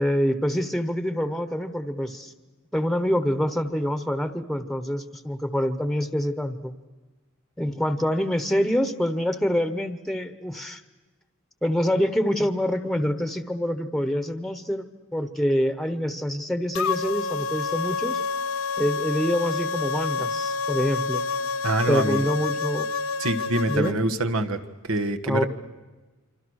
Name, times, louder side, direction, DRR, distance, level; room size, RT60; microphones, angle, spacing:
voice 1, 0.0-2.3 2.7-6.7 7.6-10.8 11.6-14.8 15.1-18.2 18.8-21.2 21.9-22.9 23.7-24.0 25.3-25.4, equal, ahead, 11 dB, 1.0 m, -26 dB
sound 1, 16.7-23.9, left 4 dB, 75° left, 0.7 m, -28 dB
voice 2, 21.6-22.2 23.2-24.6 24.9-25.5, right 2 dB, 85° right, 7 dB, 1.5 m, -25 dB
26.5 x 26.0 x 6.4 m, 1.2 s
head